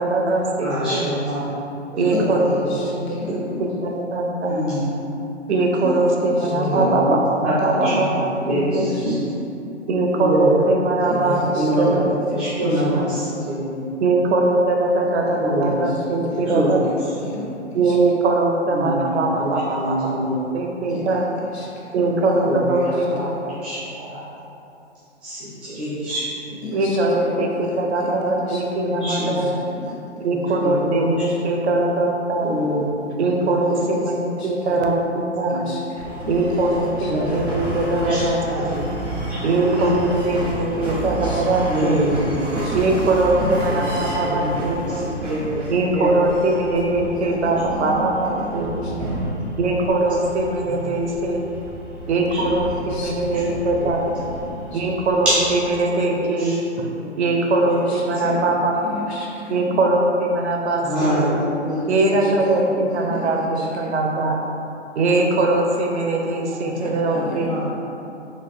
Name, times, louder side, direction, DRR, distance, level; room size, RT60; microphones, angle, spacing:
voice 1, 0.0-1.1 2.0-4.7 5.5-8.9 9.9-13.1 14.0-16.8 17.7-21.3 21.9-23.1 26.7-29.5 30.2-32.5 33.2-35.6 36.3-38.8 39.4-42.0 42.7-45.1 45.7-48.9 49.6-51.4 52.1-54.2 54.7-56.9 57.2-58.8 59.5-61.3 61.9-64.4 65.0-67.7, right 2 dB, 70° right, 1 dB, 0.6 m, -21 dB
voice 2, 0.6-1.4 1.9-2.2 2.5-2.6 4.4-4.9 6.4-6.9 7.4-7.5 7.8-8.0 8.5-9.2 10.1-10.5 11.2-12.0 12.2-13.9 15.3-15.8 16.5-16.7 17.2-17.4 18.7-18.9 19.2-19.5 19.7-20.4 22.4-23.2 23.6-23.8 24.1-24.2 25.2-26.2 29.0-29.4 30.6-31.2 32.4-33.1 35.5-35.6 37.0-37.4 38.1-38.6 39.3-39.4 39.6-39.9 41.6-42.3 43.3-43.4 43.7-43.9 44.1-45.6 45.9-46.1 50.6-50.8 52.3-52.4 53.3-53.4 55.3-55.4 56.2-56.6 57.0-57.1 60.8-61.9 67.1-67.2 67.5-67.7, equal, 5° right, -15 dB, 0.3 m, -25 dB
voice 3, 3.2-3.7 5.8-6.0 6.7-7.2 7.8-8.0 8.5-8.6 8.9-9.0 11.1-11.2 11.5-11.7 12.7-12.8 16.3-16.5 17.2-18.0 20.9-21.2 21.5-21.7 22.0-22.1 22.5-22.6 26.6-27.5 28.5-28.6 29.4-29.5 29.8-29.9 34.4-34.5 35.7-35.8 36.2-36.4 37.0-37.1 41.2-41.4 42.6-42.7 43.4-43.6 44.0-44.1 47.3-47.4 47.7-48.5 52.9-53.4 54.7-54.8 57.9-58.4 58.9-59.8 63.1-63.3 63.6-63.7 66.8-66.9 67.2-67.7, left 3 dB, 65° left, -4 dB, 0.7 m, -33 dB
sound 1, 36.0-55.8, right 1 dB, 90° right, 1.0 m, -31 dB
4.0 x 2.4 x 2.5 m, 2.8 s
hypercardioid pair, 130°, 35 cm